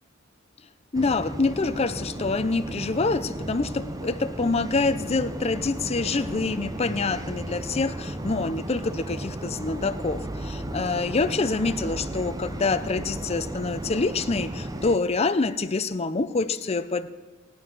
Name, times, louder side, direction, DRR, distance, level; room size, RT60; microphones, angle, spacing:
voice 1, 0.9-17.1, left 3 dB, 30° left, 11 dB, 0.6 m, -26 dB
sound 1, 0.9-15.0, right 1 dB, 20° right, 0.7 m, -35 dB
19.0 x 9.6 x 6.1 m, 1.3 s
head